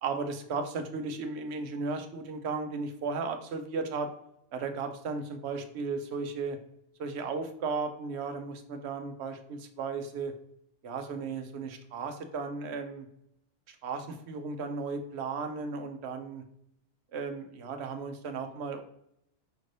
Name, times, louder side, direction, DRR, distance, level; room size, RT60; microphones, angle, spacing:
voice 1, 0.0-4.1 4.5-6.6 7.0-10.3 10.8-13.1 13.7-16.4 17.1-18.8, right 4 dB, 70° right, 6 dB, 0.9 m, -35 dB
5.0 x 3.2 x 2.6 m, 0.77 s
omnidirectional pair, 1.2 m